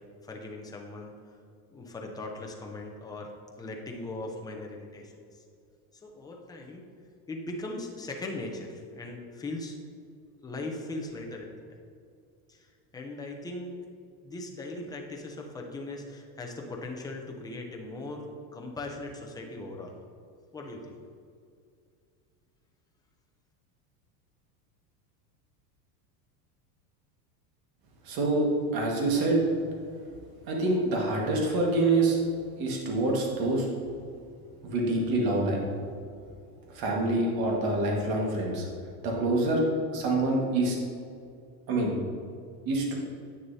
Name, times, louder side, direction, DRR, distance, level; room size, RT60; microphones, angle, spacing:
voice 1, 0.2-1.1 1.7-3.3 3.6-5.3 6.0-6.9 7.3-9.8 10.4-11.8 12.5-12.7 12.9-13.7 14.2-19.9 20.5-21.0, left 2 dB, 10° left, 0 dB, 0.5 m, -39 dB
voice 2, 28.1-29.4 30.5-32.2 32.6-33.7 34.6-35.6 36.7-38.7 39.0-39.6 39.9-40.8 41.7-41.9 42.6-42.9, right 2 dB, 45° right, -1 dB, 1.7 m, -26 dB
9.0 x 6.5 x 2.7 m, 2.4 s
supercardioid pair, 135°, 50 cm